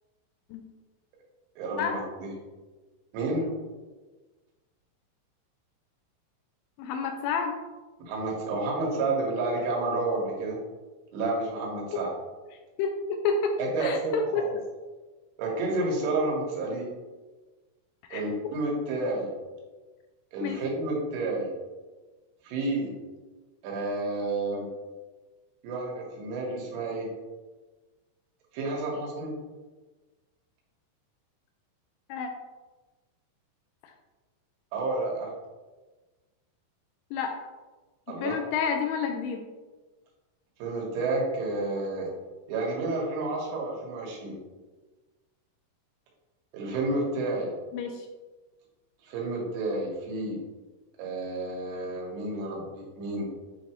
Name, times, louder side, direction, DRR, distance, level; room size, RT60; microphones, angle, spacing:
voice 1, 1.6-2.3 3.1-3.5 8.0-10.6 11.1-12.1 13.6-14.6 15.4-16.9 18.1-19.3 20.3-21.5 22.4-22.9 23.6-24.7 25.6-27.1 28.5-29.3 34.7-35.3 38.1-38.4 40.6-42.1 42.5-44.4 46.5-47.5 49.0-50.4 51.0-53.3, right 2 dB, 80° right, -2 dB, 3.8 m, -30 dB
voice 2, 6.8-7.6 12.8-13.5 13.8-14.4 18.1-18.2 20.4-20.6 32.1-32.3 37.1-37.3 38.2-39.5 47.7-48.1, left 6 dB, 85° left, 4 dB, 2.7 m, -29 dB
9.2 x 3.3 x 3.1 m, 1.2 s
omnidirectional pair, 5.6 m